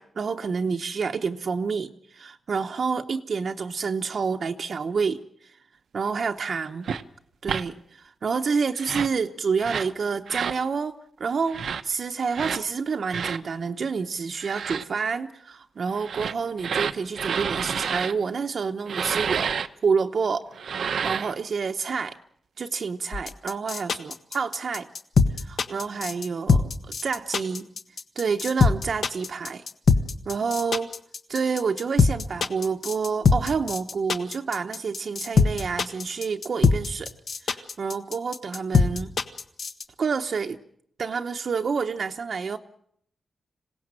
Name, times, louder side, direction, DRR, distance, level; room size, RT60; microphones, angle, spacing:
voice 1, 0.0-5.6 5.9-6.9 7.4-19.6 19.8-20.5 20.7-22.1 22.6-24.9 25.4-27.7 28.2-29.7 30.3-30.9 31.3-37.1 37.4-39.1 40.0-40.6 41.0-42.6, right 5 dB, 55° right, 5 dB, 0.9 m, -28 dB
sound 1, 6.8-7.0 7.4-7.6 8.7-9.2 9.6-9.9 10.3-10.6 11.5-11.8 12.3-12.6 13.1-13.4 14.4-14.8 16.0-18.1 18.9-19.7 20.5-21.3, right 7 dB, 85° right, 0.9 m, -29 dB
sound 2, 23.1-39.8, left 4 dB, 65° left, 1.4 m, -22 dB
26.5 x 17.5 x 7.6 m, 0.69 s
wide cardioid pair, 140°, 0 cm